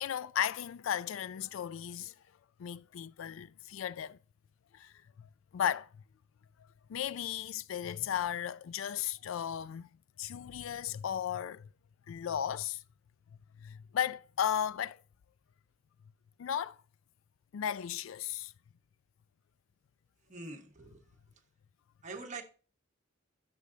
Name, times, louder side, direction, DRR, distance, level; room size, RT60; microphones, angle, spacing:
voice 1, 0.0-2.1 2.6-4.2 4.7-5.9 6.9-9.9 10.2-11.7 12.1-12.8 13.6-15.0 16.4-16.8 17.5-18.5, left 9 dB, 80° left, 0.3 m, -35 dB
voice 2, 20.3-21.1 22.0-22.4, right 3 dB, 40° right, 1.2 m, -44 dB
11.5 x 6.3 x 2.7 m
head